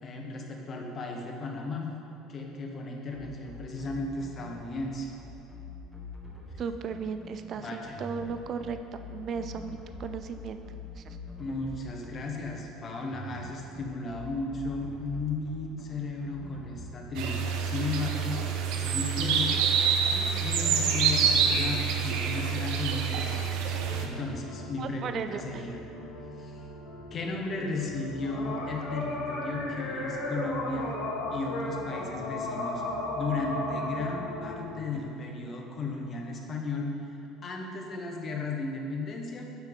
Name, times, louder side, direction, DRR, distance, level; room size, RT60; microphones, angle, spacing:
voice 1, 0.0-1.9 2.3-5.1 7.6-8.0 11.4-23.3 23.6-25.8 26.4-26.6 27.1-31.0 31.3-32.8 33.2-37.0 37.4-39.5, left 3 dB, 35° left, 1 dB, 1.0 m, -35 dB
sound 1, 3.1-16.8, left 3 dB, 5° right, 1.4 m, -45 dB
voice 2, 6.6-8.8 9.1-10.6 11.0-11.2 24.8-25.6, right 6 dB, 45° right, 8 dB, 0.4 m, -36 dB
sound 2, 17.1-24.1, right 6 dB, 75° right, 0.7 m, -27 dB
sound 3, 20.6-34.9, left 2 dB, 65° left, 1.7 m, -37 dB
9.0 x 3.8 x 5.4 m, 2.8 s
cardioid pair, 120°, 0 cm